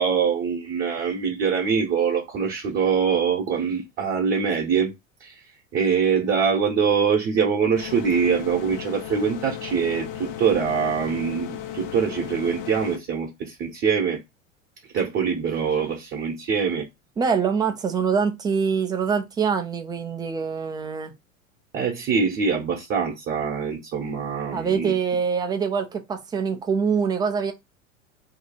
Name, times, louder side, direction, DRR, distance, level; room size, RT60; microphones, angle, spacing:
voice 1, 0.0-4.9 5.2-5.3 5.7-14.2 14.9-16.9 21.7-24.9, right 6 dB, 30° right, 0.9 m, -24 dB
sound 1, 7.7-13.0, left 11 dB, 45° left, 0.5 m, -35 dB
voice 2, 17.2-21.1 24.5-27.5, right 6 dB, 10° right, 0.3 m, -24 dB
2.8 x 2.3 x 4.2 m
figure-of-eight pair, 80°, 39 cm